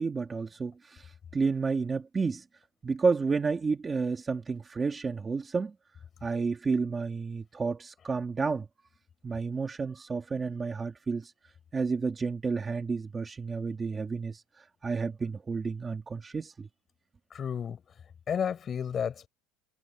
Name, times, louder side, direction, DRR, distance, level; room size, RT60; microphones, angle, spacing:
voice 1, 0.0-2.4 2.8-5.8 6.2-8.7 9.2-11.3 11.7-16.7, right 4 dB, 15° right, 2.1 m, -31 dB
voice 2, 17.3-17.8 18.3-19.3, left 7 dB, 25° left, 4.5 m, -31 dB
cardioid pair, 160°, 0 cm